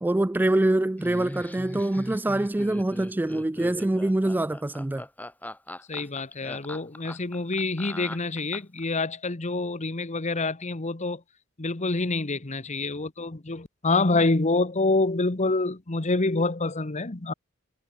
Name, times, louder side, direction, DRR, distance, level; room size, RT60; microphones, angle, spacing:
voice 1, 0.0-5.0, right 1 dB, 10° right, 0.3 m, -25 dB
Laughter, 1.0-8.8, left 1 dB, 10° left, 1.9 m, -40 dB
voice 2, 5.9-11.2 11.6-17.3, left 3 dB, 35° left, 1.2 m, -27 dB
head